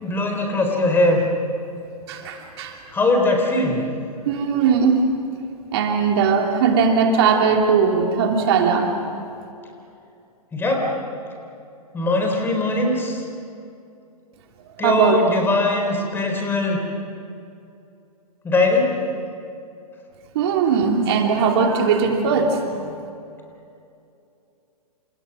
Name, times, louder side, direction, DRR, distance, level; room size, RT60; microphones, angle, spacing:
voice 1, 0.0-1.2 2.9-3.8 10.5-10.9 11.9-13.2 14.8-16.8 18.4-18.9, left 2 dB, 10° left, 2 dB, 4.0 m, -20 dB
voice 2, 2.1-2.8 4.2-5.0 5.7-8.9 14.8-15.2 20.3-22.9, right 6 dB, 40° right, 2 dB, 2.8 m, -19 dB
29.5 x 28.0 x 6.1 m, 2.6 s
figure-of-eight pair, 115°, 20 cm